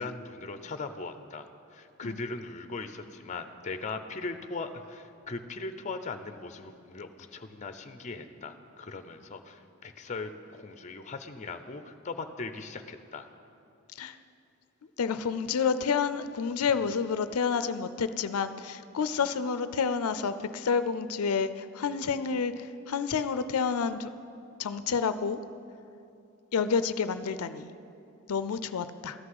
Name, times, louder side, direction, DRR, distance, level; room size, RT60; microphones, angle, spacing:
voice 1, 0.0-13.3, left 3 dB, 35° left, 9 dB, 0.6 m, -39 dB
voice 2, 15.0-22.5 22.9-24.1 24.6-25.4 26.5-27.7 28.3-29.1, left 6 dB, 90° left, 12 dB, 0.5 m, -29 dB
13.5 x 6.1 x 9.6 m, 2.7 s
head